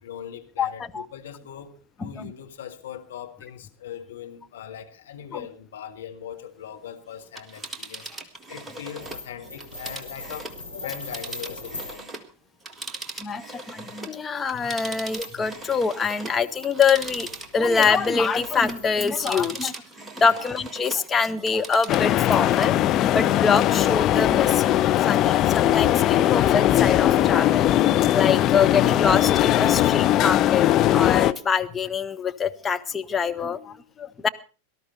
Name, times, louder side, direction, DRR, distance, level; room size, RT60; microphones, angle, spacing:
voice 1, 0.0-1.7 2.0-8.0 8.5-10.5 10.7-12.1 20.2-20.4, left 9 dB, 60° left, 1.8 m, -40 dB
voice 2, 0.6-1.1 2.0-2.3 5.3-5.4 13.2-17.3 17.5-19.7 20.2-22.7 23.1-24.7 25.1-27.7 28.1-34.3, left 5 dB, 20° left, 1.0 m, -24 dB
Telephone, 7.2-12.3 12.6-21.1 21.4-22.8 23.2-23.3, right 3 dB, 10° right, 1.7 m, -39 dB
sound 1, 9.0-12.0 14.5-19.4, left 2 dB, 85° left, 7.6 m, -41 dB
sound 2, 21.9-31.3, left 13 dB, 35° left, 0.6 m, -20 dB
18.5 x 13.0 x 4.1 m
figure-of-eight pair, 90°, 0 cm